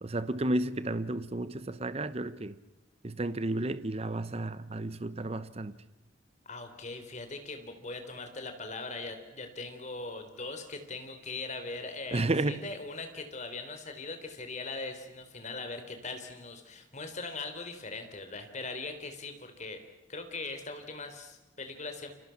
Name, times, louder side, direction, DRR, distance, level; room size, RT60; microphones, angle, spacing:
voice 1, 0.0-2.6 3.0-5.8 12.1-12.7, right 2 dB, 30° right, 0.8 m, -32 dB
voice 2, 6.5-19.8 20.1-22.1, left 3 dB, 40° left, 3.8 m, -40 dB
29.5 x 25.5 x 5.9 m
head